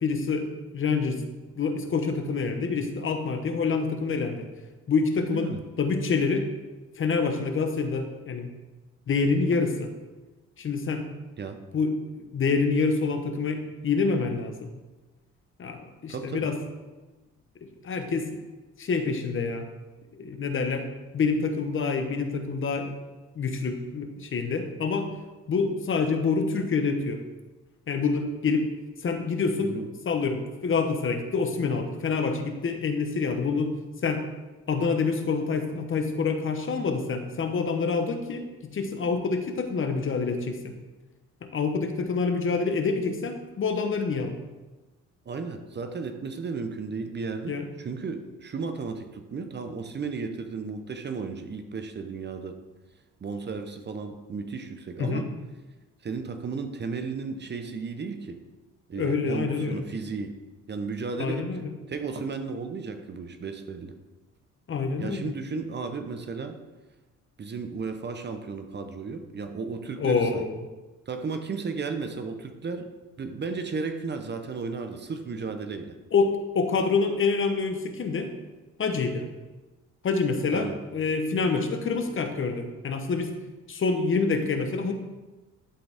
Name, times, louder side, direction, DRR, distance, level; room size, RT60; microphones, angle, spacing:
voice 1, 0.0-1.2 1.6-4.5 4.9-5.5 5.8-6.5 7.0-8.5 9.1-9.9 10.6-11.1 11.7-14.7 15.6-16.6 17.6-18.4 18.8-19.7 20.2-20.9 21.1-22.9 23.4-25.1 25.5-27.2 27.9-28.7 29.0-34.3 34.7-40.7 41.4-44.4 47.5-47.7 55.0-55.3 58.9-59.8 61.2-61.7 64.7-65.3 70.0-70.6 76.1-78.3 78.8-79.3 80.0-83.3 83.7-84.9, left 4 dB, 45° left, 6 dB, 0.9 m, -27 dB
voice 2, 5.3-5.6 11.4-11.6 16.1-16.5 29.6-29.9 45.3-52.5 53.2-55.3 56.0-58.4 58.9-60.3 60.7-63.9 65.0-66.6 67.4-70.4 71.1-72.9 73.2-75.9 80.5-80.8, right 4 dB, 35° right, 7 dB, 0.7 m, -34 dB
11.0 x 3.9 x 3.5 m, 1.2 s
cardioid pair, 90°, 30 cm